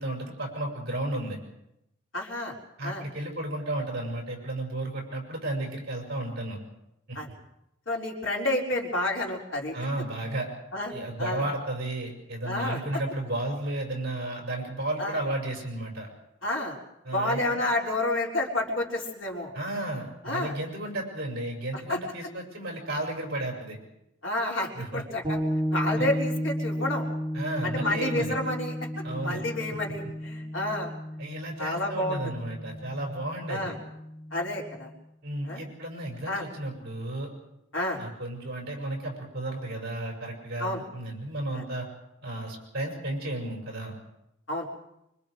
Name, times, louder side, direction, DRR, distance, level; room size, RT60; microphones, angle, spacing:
voice 1, 0.0-1.4 2.8-6.6 7.1-7.2 9.7-10.5 10.9-16.1 17.0-17.6 19.5-23.8 24.7-25.0 25.9-26.1 27.3-28.3 29.0-29.4 31.2-33.7 35.2-37.3 37.9-41.9 42.2-43.9, right 1 dB, 50° right, 1 dB, 6.4 m, -33 dB
voice 2, 2.1-2.5 2.8-3.0 7.2-7.3 7.9-9.8 10.7-11.4 12.5-12.8 15.0-15.1 16.4-16.8 17.1-19.5 20.2-20.5 21.9-22.0 24.2-25.4 25.7-27.1 27.6-28.7 29.2-30.9 31.6-32.2 33.5-33.8 34.3-34.9 35.4-35.7 36.3-36.4 37.7-38.0 40.6-40.8 41.5-41.6 44.5-44.7, left 1 dB, 75° left, -1 dB, 3.9 m, -29 dB
sound 1, 25.2-34.9, equal, 20° right, 4.3 m, -33 dB
25.0 x 24.0 x 5.0 m, 0.84 s
head